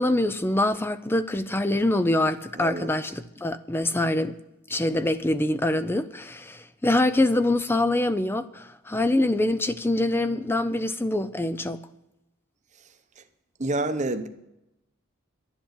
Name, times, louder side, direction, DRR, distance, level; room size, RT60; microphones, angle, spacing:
voice 1, 0.0-4.3 4.7-11.8, left 1 dB, 10° left, 0.4 m, -24 dB
voice 2, 2.5-2.9 13.6-14.3, right 2 dB, 35° right, 0.8 m, -28 dB
11.5 x 8.1 x 8.7 m
head